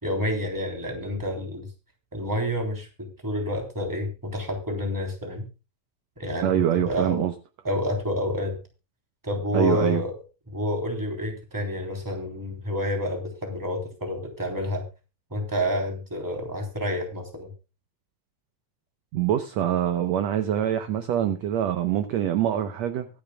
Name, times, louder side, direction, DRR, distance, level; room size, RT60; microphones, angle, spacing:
voice 1, 0.0-1.7 2.1-5.4 6.2-7.2 7.6-8.6 9.2-10.1 10.5-14.8 15.3-17.5, equal, 5° right, 2.9 m, -29 dB
voice 2, 6.4-7.3 9.5-10.0 19.1-23.1, right 11 dB, 75° right, 1.6 m, -24 dB
24.0 x 8.7 x 2.3 m
omnidirectional pair, 4.1 m